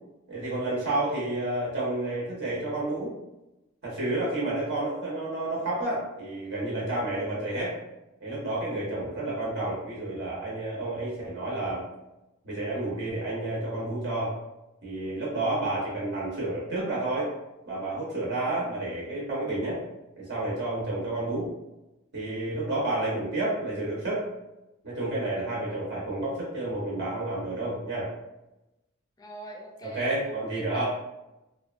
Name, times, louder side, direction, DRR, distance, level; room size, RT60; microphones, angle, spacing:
voice 1, 0.3-3.1 3.8-7.7 8.2-11.8 12.4-14.3 14.8-17.3 17.7-19.8 20.2-21.5 22.1-24.2 24.8-28.1 29.8-30.8, right 2 dB, 55° right, -6 dB, 0.8 m, -30 dB
voice 2, 29.2-30.8, right 2 dB, 20° left, 1 dB, 0.3 m, -43 dB
2.5 x 2.2 x 2.3 m, 0.96 s
head